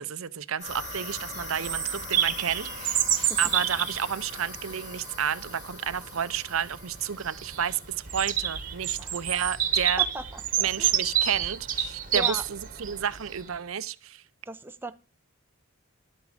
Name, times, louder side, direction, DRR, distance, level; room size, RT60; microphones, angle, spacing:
voice 1, 0.0-7.8 8.1-10.0 10.6-14.2, right 8 dB, 70° right, 0.6 m, -31 dB
sound 1, 0.6-8.8, left 1 dB, 35° left, 4.9 m, -42 dB
Bird vocalization bird call bird song, 0.7-13.4, right 9 dB, 40° right, 1.3 m, -29 dB
voice 2, 10.0-10.9 12.1-12.4 14.5-14.9, right 2 dB, 10° right, 0.6 m, -37 dB
12.0 x 8.3 x 4.9 m
head